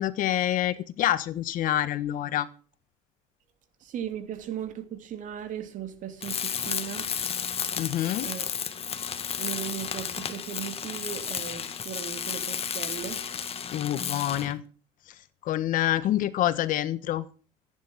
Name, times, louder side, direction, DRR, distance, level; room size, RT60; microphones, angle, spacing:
voice 1, 0.0-2.5 7.8-8.3 13.7-14.6 15.1-15.2 15.4-17.3, left 12 dB, 60° left, 1.4 m, -27 dB
voice 2, 3.8-7.1 7.5-7.9 8.2-8.4 9.4-13.2, right 10 dB, 55° right, 2.8 m, -37 dB
Tools, 6.2-14.6, left 7 dB, 40° left, 1.7 m, -33 dB
15.0 x 10.0 x 6.3 m
supercardioid pair, 85°, 16 cm